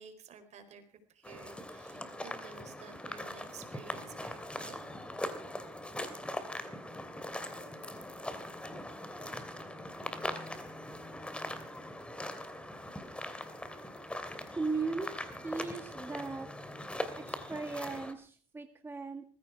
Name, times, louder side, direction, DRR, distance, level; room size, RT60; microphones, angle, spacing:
voice 1, 0.0-4.8, right 5 dB, 50° right, 9 dB, 4.2 m, -52 dB
sound 1, 1.2-18.1, left 1 dB, 5° left, 2.7 m, -41 dB
voice 2, 14.6-15.1 15.4-16.5 17.1-19.2, right 4 dB, 15° right, 5 dB, 1.9 m, -37 dB
19.5 x 15.5 x 4.7 m, 0.43 s
cardioid pair, 115°, 15 cm